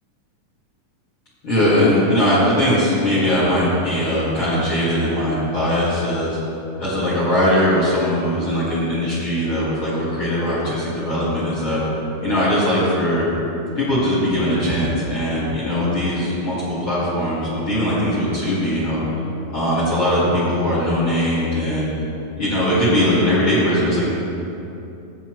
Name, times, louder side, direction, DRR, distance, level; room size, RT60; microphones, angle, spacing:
voice 1, 1.4-6.4 6.8-11.8 12.2-13.3 13.7-19.0 19.5-21.9 22.4-24.1, equal, 45° left, -9 dB, 2.6 m, -20 dB
14.0 x 8.3 x 3.1 m, 2.8 s
omnidirectional pair, 3.7 m